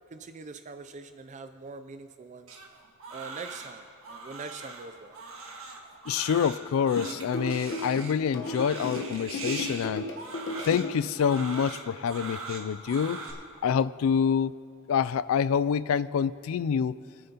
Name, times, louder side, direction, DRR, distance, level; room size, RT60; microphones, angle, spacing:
voice 1, 0.1-2.5 3.1-5.2, right 4 dB, 35° right, 9 dB, 0.4 m, -43 dB
Crying sobbing, 2.5-13.3, right 4 dB, 70° right, 1.6 m, -41 dB
voice 2, 6.1-10.1 10.6-13.2 13.6-14.6 14.9-17.0, left 7 dB, 75° left, 18 dB, 0.3 m, -26 dB
sound 1, 7.0-10.9, left 2 dB, 60° left, 1.1 m, -34 dB
25.0 x 8.9 x 2.9 m, 2.3 s
head